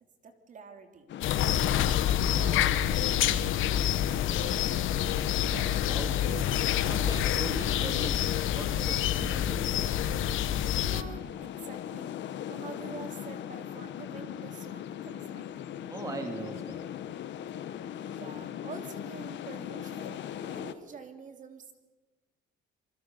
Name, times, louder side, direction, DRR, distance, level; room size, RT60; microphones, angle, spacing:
voice 1, 0.2-1.1 1.6-4.8 10.8-12.2 12.5-15.5 17.9-21.7, right 5 dB, 40° right, 7 dB, 3.1 m, -47 dB
sound 1, 1.1-20.7, left 10 dB, 65° left, 1.4 m, -39 dB
sound 2, 1.2-11.0, left 11 dB, 85° left, 1.3 m, -27 dB
voice 2, 5.4-10.2 15.9-16.9, right 2 dB, 15° right, 5 dB, 2.6 m, -41 dB
27.0 x 24.0 x 6.9 m, 1.2 s
cardioid pair, 175°, 20 cm